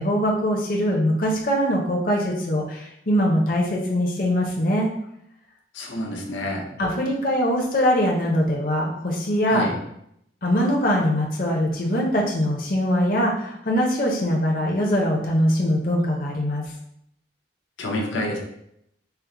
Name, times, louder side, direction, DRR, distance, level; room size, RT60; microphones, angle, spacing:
voice 1, 0.0-4.9 6.8-9.7 10.4-16.6, equal, 50° left, -2 dB, 0.6 m, -22 dB
voice 2, 5.7-6.7 9.5-9.8 17.8-18.4, left 1 dB, 90° left, 0 dB, 0.7 m, -28 dB
4.5 x 2.1 x 3.7 m, 0.76 s
head